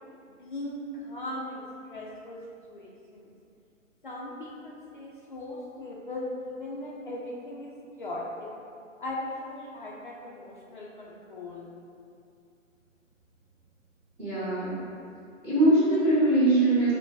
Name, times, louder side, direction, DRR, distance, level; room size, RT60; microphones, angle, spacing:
voice 1, 0.4-1.6 1.9-2.4 2.7-3.3 4.0-7.7 8.0-8.5 9.0-11.7, left 1 dB, 40° left, -4 dB, 0.5 m, -38 dB
voice 2, 14.2-14.8 15.4-16.9, right 1 dB, 5° right, -14 dB, 0.7 m, -22 dB
5.2 x 2.2 x 4.7 m, 2.5 s
figure-of-eight pair, 140°, 40 cm